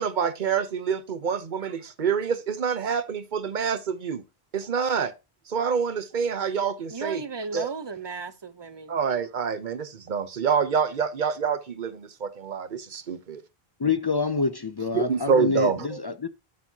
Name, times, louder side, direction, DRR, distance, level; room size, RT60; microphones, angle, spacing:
voice 1, 0.0-4.2 4.5-5.1 5.5-7.2 7.5-7.7 8.9-13.4 14.9-16.0, right 6 dB, 50° right, 0.9 m, -27 dB
voice 2, 6.9-9.0, right 4 dB, 30° right, 0.6 m, -35 dB
voice 3, 13.8-16.3, left 4 dB, 45° left, 0.3 m, -26 dB
13.0 x 4.5 x 2.8 m
omnidirectional pair, 1.0 m